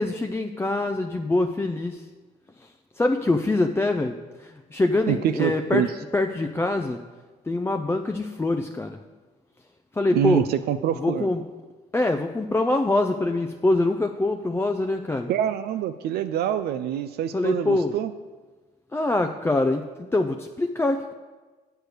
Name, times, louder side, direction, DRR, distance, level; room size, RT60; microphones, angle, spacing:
voice 1, 0.0-2.1 2.6-7.0 7.4-9.0 9.9-10.4 11.0-11.4 11.9-15.3 17.3-17.9 18.9-21.1, left 2 dB, 15° left, 5 dB, 0.5 m, -24 dB
voice 2, 5.1-5.9 10.1-11.3 15.3-18.1, right 10 dB, 70° right, 9 dB, 0.4 m, -25 dB
8.1 x 4.5 x 6.5 m, 1.3 s
supercardioid pair, 65°, 17 cm